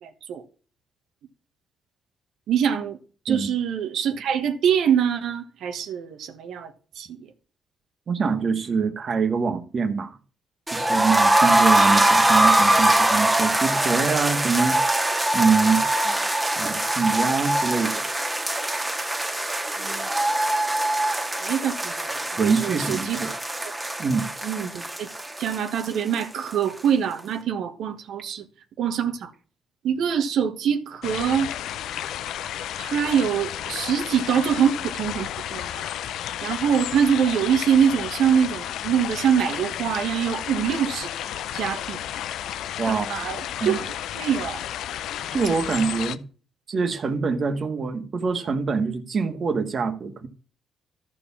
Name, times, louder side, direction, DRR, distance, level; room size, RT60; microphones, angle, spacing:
voice 1, 0.0-0.4 2.5-3.0 3.2-7.3 19.8-20.1 21.4-23.4 24.4-25.1 25.4-28.5 28.8-29.3 29.8-31.5 32.8-35.8 36.4-41.1 41.5-42.0 42.9-43.8 44.1-44.6, right 8 dB, 75° right, 1.5 m, -24 dB
voice 2, 8.1-10.2 10.7-14.8 15.3-15.8 16.6-17.9 22.4-23.3 24.0-24.3 42.8-43.2 43.6-43.8 45.3-46.2 46.7-50.3, right 5 dB, 45° right, 1.9 m, -24 dB
sound 1, 10.7-26.5 26.8-26.9 27.2-27.3, right 1 dB, 10° right, 1.7 m, -22 dB
sound 2, 31.0-46.2, left 11 dB, 80° left, 0.7 m, -32 dB
14.0 x 4.6 x 7.3 m
cardioid pair, 90°, 0 cm